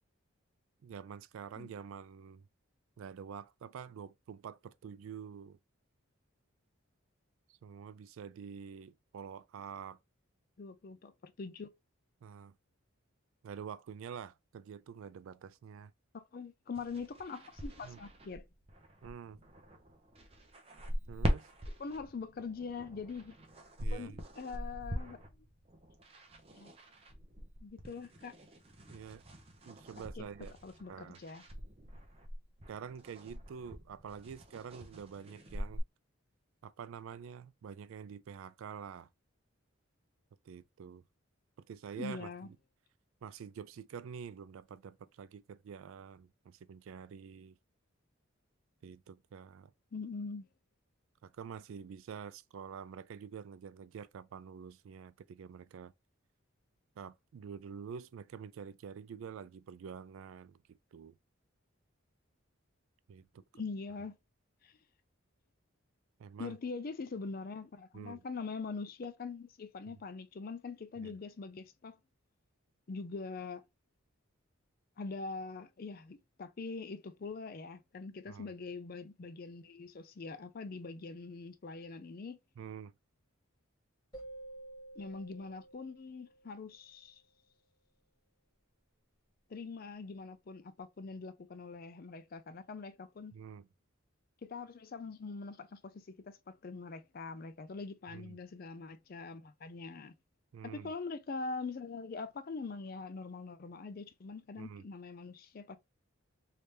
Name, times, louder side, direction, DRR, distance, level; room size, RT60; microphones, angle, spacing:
voice 1, 0.8-2.4 3.0-5.6 7.6-10.0 12.2-12.5 13.4-15.9 17.8-18.0 19.0-19.4 21.1-21.5 23.8-24.2 28.9-29.2 29.6-30.6 30.9-31.2 32.7-35.8 36.6-39.1 40.5-41.0 41.6-42.6 43.2-47.6 48.8-49.7 51.2-55.9 57.0-61.2 63.1-63.4 66.2-66.6 67.9-68.2 71.0-71.2 78.3-78.6 82.6-82.9 93.3-93.7 98.1-98.4 100.5-100.9 104.6-104.8, right 7 dB, 70° right, 0.3 m, -47 dB
voice 2, 10.6-11.7 16.1-18.5 21.8-23.3 23.9-25.3 26.5-26.7 27.6-28.4 30.2-30.3 30.6-31.4 42.0-42.5 49.9-50.5 63.5-64.1 64.6-64.8 66.4-72.0 72.9-73.6 75.0-82.4 85.0-87.2 89.5-93.4 94.4-100.1 100.6-105.8, left 4 dB, 45° left, 0.4 m, -43 dB
sound 1, 16.7-35.8, equal, 25° right, 0.6 m, -42 dB
sound 2, 84.1-86.8, right 2 dB, 20° left, 1.5 m, -51 dB
3.2 x 2.7 x 3.3 m
head